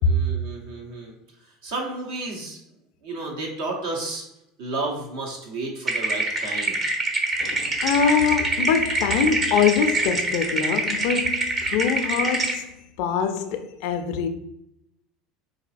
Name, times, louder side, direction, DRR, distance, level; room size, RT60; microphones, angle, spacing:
voice 1, 0.0-1.2 1.4-2.6 3.0-4.2 4.6-6.8, right 2 dB, 75° right, 1.0 m, -32 dB
sound 1, 5.9-12.6, right 2 dB, 35° right, 0.8 m, -25 dB
voice 2, 7.4-14.3, left 6 dB, 65° left, 0.4 m, -24 dB
4.7 x 2.7 x 2.5 m
hypercardioid pair, 80°, 0 cm